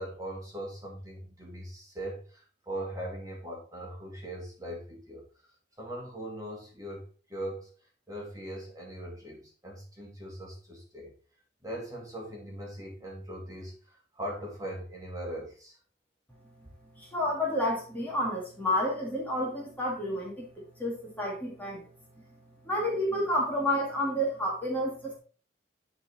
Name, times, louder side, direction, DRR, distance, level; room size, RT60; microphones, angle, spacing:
voice 1, 0.0-5.5 5.8-7.7 8.1-11.1 11.6-15.8, right 1 dB, 20° right, -2 dB, 2.1 m, -40 dB
voice 2, 17.0-20.5 20.8-21.8 22.6-25.2, left 1 dB, 10° left, -3 dB, 2.0 m, -30 dB
10.5 x 4.1 x 4.1 m, 0.39 s
head